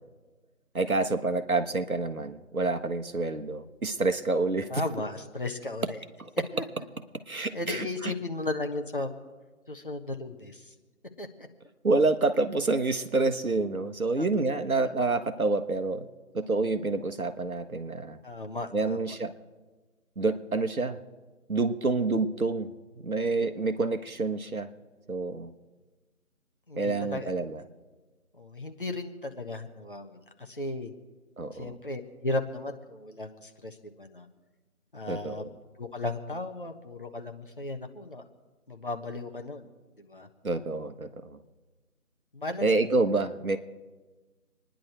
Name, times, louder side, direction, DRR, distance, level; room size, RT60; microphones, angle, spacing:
voice 1, 0.7-4.8 6.2-6.3 7.3-8.1 11.8-16.1 16.3-18.2 18.7-19.3 20.2-21.0 21.5-22.7 23.0-24.7 25.1-25.5 26.8-27.6 31.4-31.7 35.1-35.5 40.4-41.4 42.6-43.6, right 3 dB, 70° right, 8 dB, 1.4 m, -28 dB
voice 2, 4.7-6.0 6.5-6.6 7.5-9.1 9.7-10.7 11.2-11.5 14.2-14.3 18.2-19.1 26.7-27.3 28.4-30.9 31.5-34.3 34.9-35.4 35.8-38.2 38.7-39.7 40.0-40.3 42.3-43.0, left 2 dB, 35° left, 4 dB, 1.3 m, -35 dB
27.0 x 10.5 x 4.4 m, 1.3 s
figure-of-eight pair, 165°, 44 cm